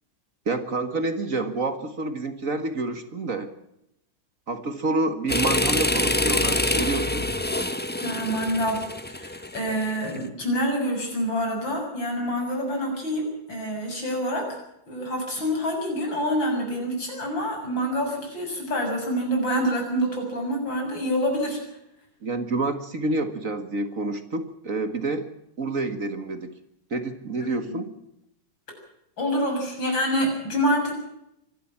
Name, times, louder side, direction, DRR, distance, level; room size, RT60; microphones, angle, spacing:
voice 1, 0.5-3.5 4.5-7.3 22.2-25.3 25.6-26.6 26.9-27.9, right 2 dB, 45° right, 9 dB, 1.8 m, -28 dB
sound 1, 5.3-10.2, left 1 dB, 10° left, 0.7 m, -26 dB
voice 2, 8.0-8.8 9.2-14.6 14.9-21.6 27.4-27.8 29.2-30.9, equal, 75° left, 2 dB, 7.6 m, -27 dB
24.5 x 12.5 x 8.6 m, 0.82 s
omnidirectional pair, 2.1 m